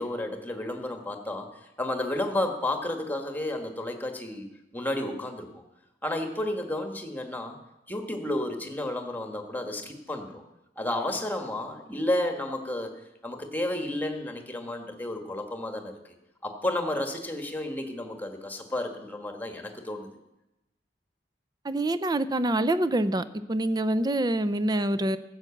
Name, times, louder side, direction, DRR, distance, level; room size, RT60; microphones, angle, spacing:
voice 1, 0.0-4.5 4.7-5.6 6.0-7.6 7.9-10.4 10.8-12.9 13.2-15.9 16.4-20.1, left 1 dB, 10° left, 4 dB, 1.4 m, -32 dB
voice 2, 21.6-23.2 23.5-25.2, right 1 dB, 20° right, 14 dB, 0.5 m, -25 dB
14.0 x 7.9 x 7.1 m, 0.95 s
head